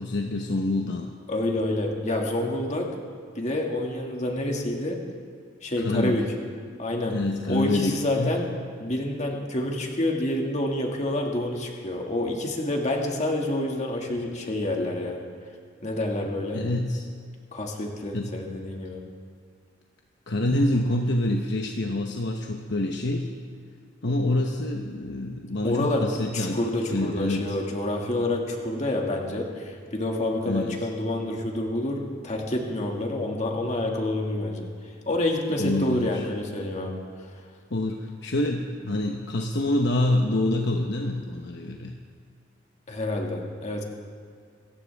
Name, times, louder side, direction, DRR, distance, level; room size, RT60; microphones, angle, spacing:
voice 1, 0.0-1.1 5.8-6.2 7.1-8.3 16.5-17.1 18.1-18.3 20.3-23.4 24.0-26.6 26.9-27.6 30.5-30.8 35.6-36.2 37.7-41.9, left 1 dB, 60° left, 2 dB, 1.0 m, -26 dB
voice 2, 1.3-2.9 3.4-5.0 5.6-6.3 6.8-7.2 7.5-8.5 8.8-15.2 15.8-16.6 17.5-19.0 25.6-37.0 42.9-43.8, left 1 dB, 35° left, 0 dB, 2.1 m, -28 dB
26.5 x 14.5 x 3.5 m, 2.2 s
head